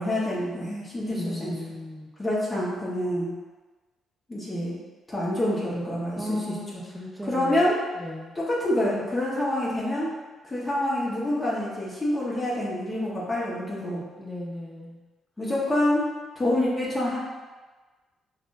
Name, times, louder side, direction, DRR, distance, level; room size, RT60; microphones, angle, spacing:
voice 1, 0.0-1.5 2.2-3.3 4.3-4.8 5.1-6.8 7.3-7.8 8.3-10.1 10.4-14.0 15.4-16.1 16.3-17.2, left 1 dB, 20° left, -7 dB, 1.2 m, -27 dB
voice 2, 1.1-2.1 6.2-7.6 8.0-8.3 14.2-15.0, left 1 dB, ahead, -2 dB, 0.8 m, -35 dB
5.9 x 2.5 x 2.6 m, 1.3 s
cardioid pair, 90°, 0 cm